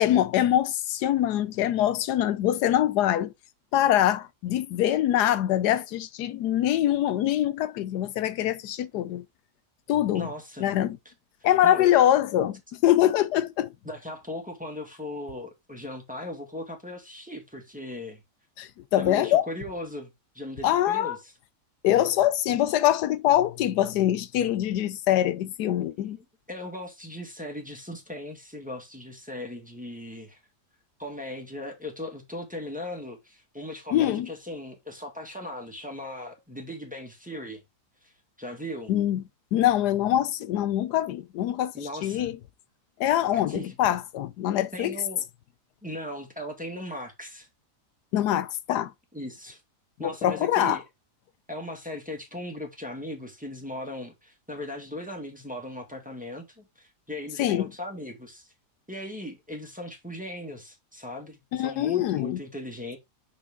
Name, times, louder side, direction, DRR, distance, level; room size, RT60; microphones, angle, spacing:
voice 1, 0.0-3.3 3.7-9.2 9.9-10.3 10.6-11.0 11.4-13.7 18.6-19.5 20.6-21.2 21.8-26.2 33.9-34.3 38.9-39.2 39.5-42.4 43.0-44.9 48.1-48.9 50.0-50.8 57.4-57.7 61.5-62.4, left 12 dB, 85° left, 1.2 m, -24 dB
voice 2, 10.1-10.7 11.6-12.0 13.8-18.2 19.0-21.3 26.2-30.4 31.0-37.6 38.0-38.1 38.4-38.9 41.7-42.3 43.3-43.8 44.7-45.2 45.8-47.5 49.1-49.6 50.0-50.8 51.5-58.5 58.9-63.0, left 1 dB, 5° right, 1.9 m, -38 dB
6.2 x 6.1 x 3.6 m
omnidirectional pair, 1.8 m